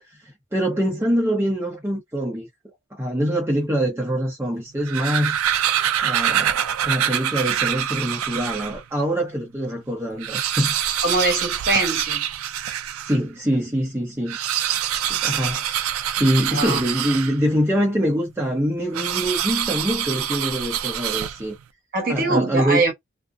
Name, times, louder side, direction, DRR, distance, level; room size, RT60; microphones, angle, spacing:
voice 1, 0.5-2.5 2.9-5.4 6.0-6.6 6.8-10.7 13.0-14.4 15.0-15.6 16.2-21.6 22.1-22.8, equal, 10° right, 0.7 m, -24 dB
sound 1, 4.7-8.8 9.4-9.5 9.7-9.8 10.1-13.2 14.2-17.6 18.9-21.6, right 10 dB, 80° right, 0.4 m, -25 dB
voice 2, 11.0-12.2 16.5-16.8 21.9-22.9, right 2 dB, 45° right, 1.1 m, -22 dB
2.5 x 2.0 x 2.4 m
head